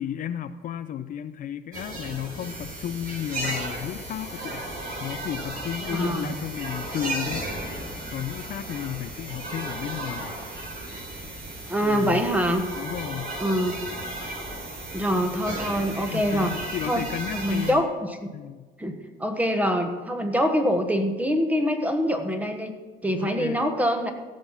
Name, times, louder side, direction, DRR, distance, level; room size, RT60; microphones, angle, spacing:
voice 1, 0.0-4.6 5.0-7.4 8.1-10.4 11.8-12.2 12.8-13.3 16.1-17.8 18.3-18.7 23.2-23.6, left 10 dB, 55° left, 11 dB, 0.5 m, -33 dB
sound 1, 1.7-17.7, right 1 dB, 55° right, 4.6 m, -35 dB
voice 2, 5.9-6.2 11.7-12.6 13.4-13.8 14.9-16.5 16.9-17.0 17.3-17.9 18.2-18.3 18.8-22.7 23.0-24.1, equal, 10° right, 6 dB, 1.4 m, -24 dB
16.0 x 6.5 x 5.7 m, 1.4 s
cardioid pair, 110°, 17 cm